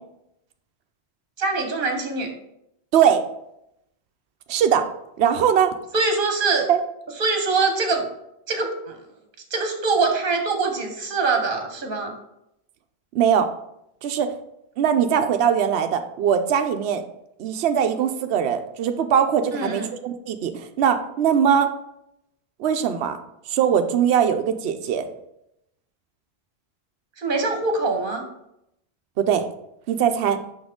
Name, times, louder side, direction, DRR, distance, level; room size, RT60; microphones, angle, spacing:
voice 1, 1.4-2.3 5.9-6.7 7.2-8.1 8.5-9.0 9.5-12.1 19.5-19.9 27.2-28.2, right 3 dB, 55° right, 4 dB, 1.3 m, -23 dB
voice 2, 2.9-3.2 4.5-4.9 5.2-5.7 6.7-6.8 13.1-13.5 14.0-14.3 14.8-17.0 17.4-21.7 22.6-23.2 23.5-25.1 29.2-29.4 29.9-30.4, right 8 dB, 80° right, 7 dB, 0.8 m, -21 dB
6.2 x 5.4 x 3.6 m, 0.81 s
omnidirectional pair, 1.1 m